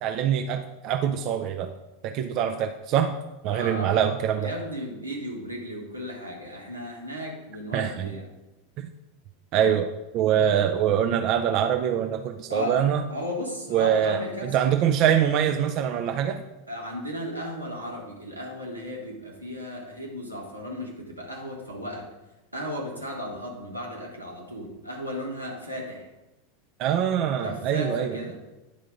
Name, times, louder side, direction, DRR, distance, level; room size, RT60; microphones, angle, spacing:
voice 1, 0.0-1.7 2.0-3.1 3.4-4.5 7.7-8.1 8.8-8.9 9.5-13.0 13.7-16.4 26.8-28.2, right 9 dB, 40° right, 6 dB, 0.4 m, -24 dB
voice 2, 3.5-4.1 4.4-8.3 12.5-14.5 16.7-22.1 22.5-26.1 27.4-28.4, equal, 85° right, -2 dB, 1.6 m, -35 dB
10.0 x 3.8 x 4.9 m, 1.0 s
figure-of-eight pair, 85°, 0 cm